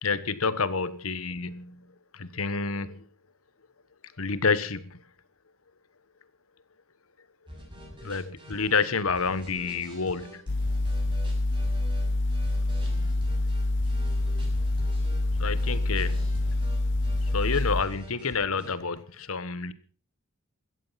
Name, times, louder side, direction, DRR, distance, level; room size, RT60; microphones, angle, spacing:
voice 1, 0.0-1.8 2.1-3.0 4.2-5.0 8.0-10.4 15.4-16.3 17.3-19.7, left 4 dB, 80° left, 1.3 m, -29 dB
sound 1, 7.5-18.7, equal, 25° right, 7.2 m, -46 dB
sound 2, 10.5-17.8, left 2 dB, 60° left, 0.8 m, -26 dB
16.0 x 14.0 x 5.8 m
head